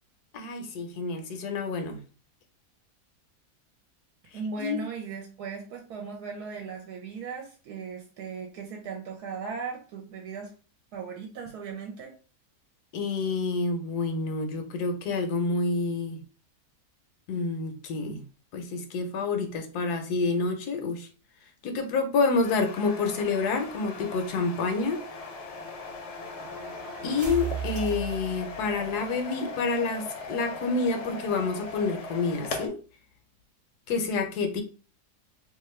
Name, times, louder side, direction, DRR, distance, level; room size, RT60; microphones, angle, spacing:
voice 1, 0.3-2.0 4.6-4.8 12.9-16.2 17.3-18.2 18.5-21.1 21.6-25.0 27.0-32.8 33.9-34.6, left 4 dB, 80° left, 5 dB, 1.2 m, -28 dB
voice 2, 4.3-10.5 10.9-12.1, right 5 dB, 80° right, 1 dB, 1.1 m, -37 dB
sound 1, 22.4-32.7, left 3 dB, 60° left, 0.8 m, -39 dB
sound 2, 22.4-29.1, right 5 dB, 40° right, 0.7 m, -40 dB
2.9 x 2.3 x 3.1 m, 0.38 s
omnidirectional pair, 1.7 m